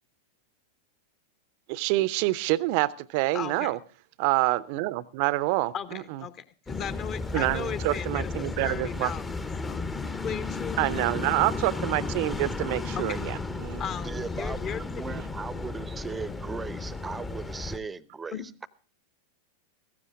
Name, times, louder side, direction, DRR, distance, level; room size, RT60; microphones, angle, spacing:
voice 1, 1.7-3.8 4.2-6.2 7.3-9.1 10.8-13.8 15.1-15.2, right 19 dB, 45° right, 20 dB, 0.7 m, -27 dB
voice 2, 3.3-3.8 5.7-11.0 13.0-13.2 13.8-14.8 18.3-18.4, left 8 dB, 30° left, 14 dB, 1.2 m, -37 dB
sound 1, 6.7-17.8, left 3 dB, 15° left, 0.9 m, -34 dB
voice 3, 14.0-18.7, right 4 dB, 15° right, 20 dB, 0.8 m, -38 dB
15.5 x 15.0 x 3.7 m, 0.38 s
figure-of-eight pair, 90°, 0 cm